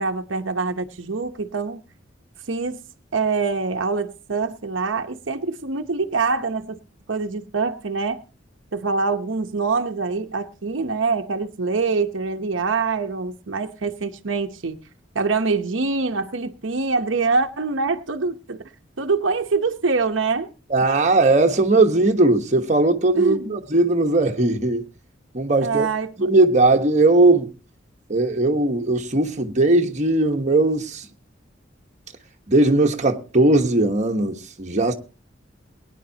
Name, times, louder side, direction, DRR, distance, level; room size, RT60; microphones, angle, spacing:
voice 1, 0.0-1.8 2.5-2.8 3.1-6.8 7.1-8.2 8.7-14.8 15.1-18.7 19.0-20.5 23.1-23.6 25.6-26.3, right 4 dB, 85° right, 0.9 m, -24 dB
voice 2, 20.7-24.9 25.3-25.9 26.2-27.5 28.1-31.1 32.5-34.9, right 2 dB, 40° right, 1.2 m, -18 dB
22.0 x 10.0 x 2.8 m
head